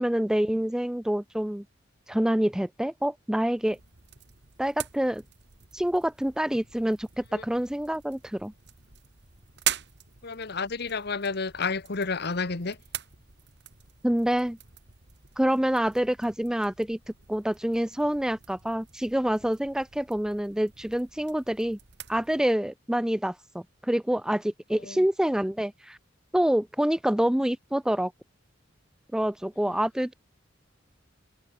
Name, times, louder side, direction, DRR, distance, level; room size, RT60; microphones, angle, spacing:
voice 1, 0.0-1.6 2.1-3.8 4.6-5.2 5.7-8.5 14.0-14.6 15.4-17.0 17.3-21.8 22.1-26.0 26.3-28.1 29.1-30.1, equal, 5° right, 0.4 m, -27 dB
sound 1, 3.7-22.4, right 11 dB, 60° right, 3.5 m, -42 dB
voice 2, 10.2-12.8 24.8-25.0 29.6-29.8, left 4 dB, 55° left, 1.3 m, -31 dB
head